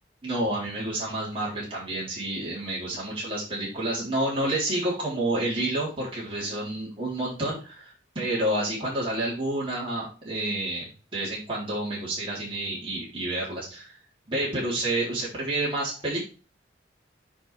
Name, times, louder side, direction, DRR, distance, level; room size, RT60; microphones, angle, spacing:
voice 1, 0.2-14.0 14.3-16.2, right 1 dB, 30° right, -7 dB, 4.0 m, -29 dB
8.1 x 5.6 x 3.5 m, 0.33 s
head